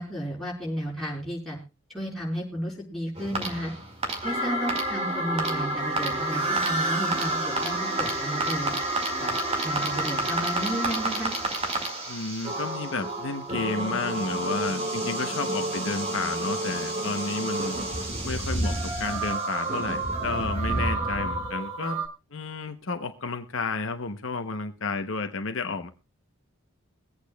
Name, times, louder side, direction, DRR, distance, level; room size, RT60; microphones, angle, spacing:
voice 1, 0.0-1.6 1.9-3.7 4.2-8.7 9.2-9.3 9.6-11.3, equal, ahead, 4.4 m, -33 dB
sound 1, 3.1-22.1, right 2 dB, 25° right, 1.9 m, -29 dB
voice 2, 12.1-17.8 18.2-22.0 22.3-25.9, left 3 dB, 65° left, 0.8 m, -31 dB
23.0 x 8.4 x 2.2 m
head